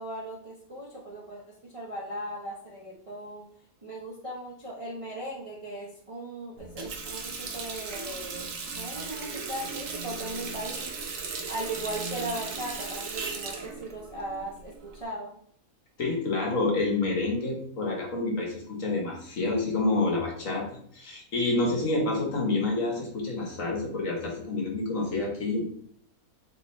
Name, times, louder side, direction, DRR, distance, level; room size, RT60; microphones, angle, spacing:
voice 1, 0.0-3.5 3.8-11.0 11.5-15.3, right 1 dB, 35° right, -5 dB, 0.6 m, -38 dB
Water tap faucet, 6.6-15.0, right 4 dB, 65° right, 1.1 m, -37 dB
voice 2, 16.0-20.7 20.9-25.6, left 2 dB, 60° left, -1 dB, 1.4 m, -28 dB
4.2 x 3.3 x 3.0 m, 0.63 s
omnidirectional pair, 1.6 m